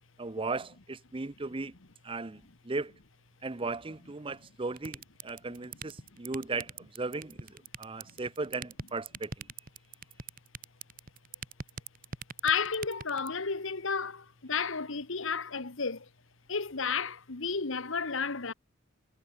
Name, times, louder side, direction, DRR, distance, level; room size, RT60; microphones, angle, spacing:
voice 1, 0.2-1.7 2.0-2.9 3.4-9.5, right 3 dB, 25° right, 0.6 m, -37 dB
sound 1, 4.8-13.3, right 5 dB, 40° right, 2.7 m, -40 dB
voice 2, 12.4-16.0 16.5-18.5, left 5 dB, 65° left, 1.4 m, -32 dB
head